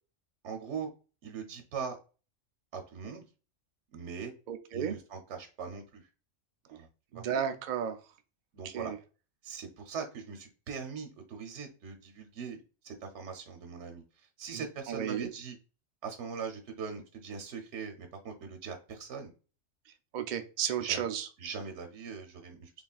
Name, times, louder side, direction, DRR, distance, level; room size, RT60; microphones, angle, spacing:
voice 1, 0.4-0.9 1.2-2.0 2.7-3.2 3.9-4.3 4.7-6.0 6.7-6.9 7.1-7.2 8.5-8.9 9.4-12.6 12.8-14.0 14.4-15.6 16.0-19.3 20.8-21.1 21.4-22.7, right 6 dB, 60° right, 4 dB, 1.0 m, -41 dB
voice 2, 4.5-5.0 7.1-8.0 8.6-9.0 14.5-15.3 19.9-21.3, right 9 dB, 85° right, 7 dB, 0.4 m, -34 dB
4.0 x 3.4 x 2.3 m, 0.34 s
omnidirectional pair, 1.4 m